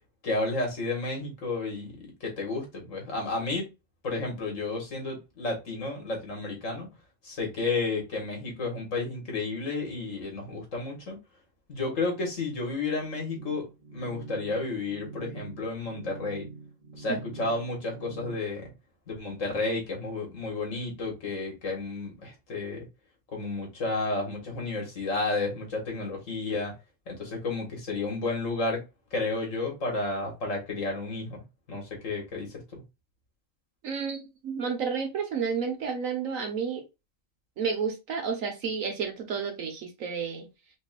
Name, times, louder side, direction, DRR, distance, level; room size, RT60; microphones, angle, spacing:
voice 1, 0.2-3.7 4.0-6.9 7.2-11.2 11.7-13.7 13.9-16.5 17.0-18.7 19.1-22.8 23.3-26.7 27.1-28.8 29.1-31.4 31.7-32.5 32.7-32.8, left 3 dB, 70° left, 2.1 m, -32 dB
sound 1, 13.3-18.4, right 3 dB, 45° right, 0.7 m, -44 dB
voice 2, 33.8-36.8 37.6-40.5, right 6 dB, 80° right, 1.5 m, -31 dB
5.2 x 3.0 x 2.4 m
omnidirectional pair, 1.4 m